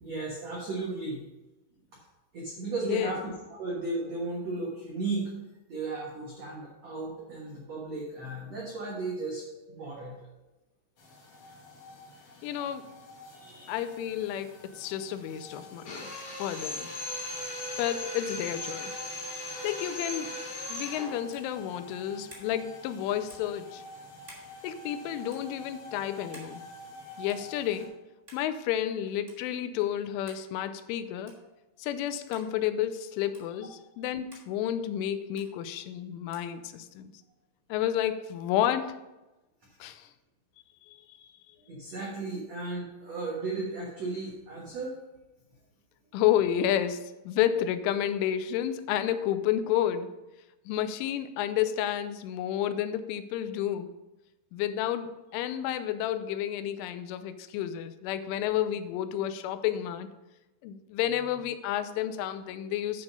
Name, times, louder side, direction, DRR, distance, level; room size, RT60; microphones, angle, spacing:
voice 1, 0.0-1.2 2.3-3.2 3.5-5.3 5.7-10.3 13.3-13.8 41.6-44.9, right 3 dB, 90° right, -4 dB, 1.4 m, -35 dB
voice 2, 2.8-3.2 12.4-12.9 13.7-16.9 17.8-19.0 19.6-20.4 20.7-23.8 24.6-26.6 27.2-27.9 28.3-31.4 31.8-37.1 37.7-39.0 39.8-40.1 40.9-41.3 46.1-50.2 50.7-53.9 54.5-60.1 60.6-63.0, left 11 dB, 90° left, 11 dB, 3.1 m, -31 dB
sound 1, 11.0-27.9, left 2 dB, 55° left, 1.7 m, -49 dB
Drill, 15.8-21.1, left 1 dB, 40° left, 2.8 m, -37 dB
sound 2, 21.3-21.5 22.3-22.5 23.3-23.5 24.2-24.5 25.3-25.4 26.3-26.5 27.3-27.5 28.3-28.5 29.3-29.4 30.3-30.5 31.2-31.5 32.3-32.5 33.3-33.5 34.3-34.5 35.4-35.5 36.3-36.5, right 2 dB, 25° right, 1.8 m, -51 dB
10.5 x 4.8 x 5.4 m, 1.0 s
omnidirectional pair, 5.4 m